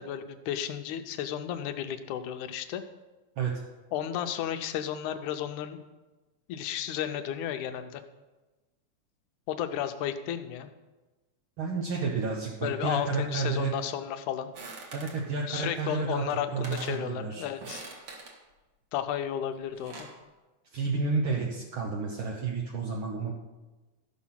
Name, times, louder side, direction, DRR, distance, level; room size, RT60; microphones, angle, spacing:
voice 1, 0.0-2.8 3.9-5.8 6.5-8.0 9.5-10.7 12.6-14.5 15.5-17.9 18.9-20.1, left 10 dB, 80° left, 9 dB, 2.1 m, -33 dB
voice 2, 11.6-13.7 14.9-16.2 16.5-17.5 20.7-23.3, right 4 dB, 65° right, -1 dB, 1.3 m, -31 dB
sound 1, 14.5-15.2 16.1-16.2 16.5-17.0 17.6-18.4 19.5-20.2, right 3 dB, 50° right, 2.0 m, -43 dB
14.0 x 6.1 x 5.7 m, 1.1 s
omnidirectional pair, 3.6 m